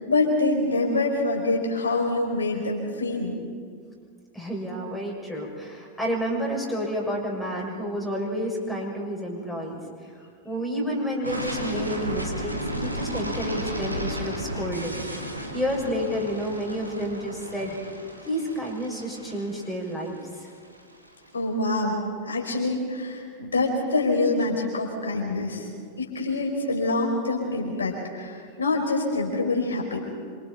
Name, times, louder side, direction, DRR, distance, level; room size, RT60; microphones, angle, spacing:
voice 1, 0.0-3.4 21.3-22.0 22.2-25.7 26.0-30.0, left 2 dB, 75° left, 0 dB, 4.6 m, -25 dB
voice 2, 4.3-9.8 10.4-15.3 15.5-17.8 18.3-20.5, equal, 5° left, -3 dB, 6.2 m, -30 dB
sound 1, 11.2-21.1, equal, 85° right, 2.4 m, -33 dB
27.5 x 25.5 x 4.6 m, 2.1 s
figure-of-eight pair, 90°, 0 cm